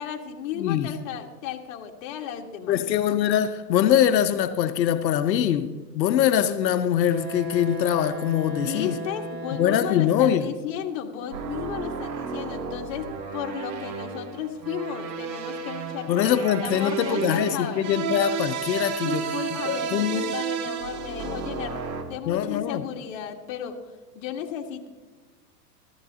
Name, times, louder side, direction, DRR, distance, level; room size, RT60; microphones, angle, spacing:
voice 1, 0.0-2.8 8.5-17.8 19.0-23.8 24.2-24.9, left 9 dB, 50° left, 1.7 m, -34 dB
voice 2, 0.6-0.9 2.7-8.9 9.5-10.5 16.1-19.3 19.7-20.3 22.3-22.8, left 10 dB, 90° left, 0.9 m, -23 dB
Wind instrument woodwind instrument, 7.1-10.5, right 2 dB, 55° right, 4.6 m, -36 dB
sound 1, 11.3-22.0, right 7 dB, 85° right, 2.2 m, -32 dB
14.5 x 14.5 x 2.8 m
hypercardioid pair, 135°, 50 cm